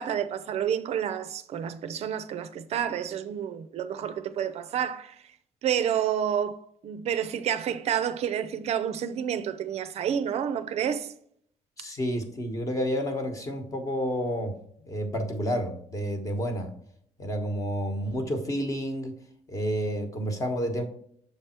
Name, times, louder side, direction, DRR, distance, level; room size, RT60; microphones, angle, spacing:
voice 1, 0.0-5.2 5.6-6.6 6.8-11.1, right 9 dB, 55° right, 0.4 m, -29 dB
voice 2, 11.8-14.5 14.9-16.7 17.2-19.1 19.5-20.8, equal, 25° left, 1.1 m, -30 dB
6.9 x 3.4 x 4.3 m
cardioid pair, 160°, 13 cm